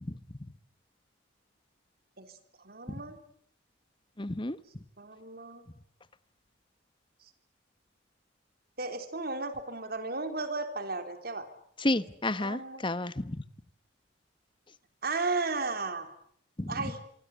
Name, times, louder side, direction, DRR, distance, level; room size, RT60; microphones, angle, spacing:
voice 1, 2.6-3.2 5.0-5.7 8.8-11.5 12.0-12.1 12.4-12.8 15.0-16.1 16.7-17.0, right 3 dB, 50° right, 8 dB, 3.7 m, -34 dB
voice 2, 4.2-4.6 11.8-13.4 16.6-16.7, left 2 dB, 25° left, 15 dB, 1.1 m, -30 dB
26.5 x 24.5 x 8.3 m, 0.66 s
head